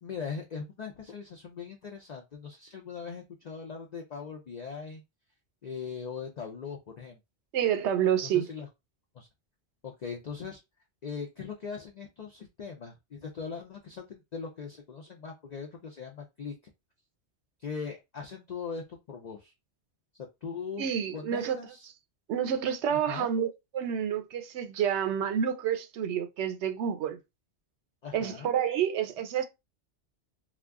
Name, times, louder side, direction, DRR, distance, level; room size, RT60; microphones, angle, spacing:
voice 1, 0.0-5.0 5.6-7.2 8.2-8.7 9.1-9.3 9.8-10.6 11.0-16.5 17.6-19.5 20.1-21.9 22.9-23.3 28.0-28.5, left 5 dB, 55° left, 0.5 m, -40 dB
voice 2, 7.5-8.5 20.8-21.6 22.3-27.2 28.1-29.5, right 9 dB, 85° right, 0.9 m, -29 dB
2.3 x 2.2 x 3.5 m
omnidirectional pair, 1.1 m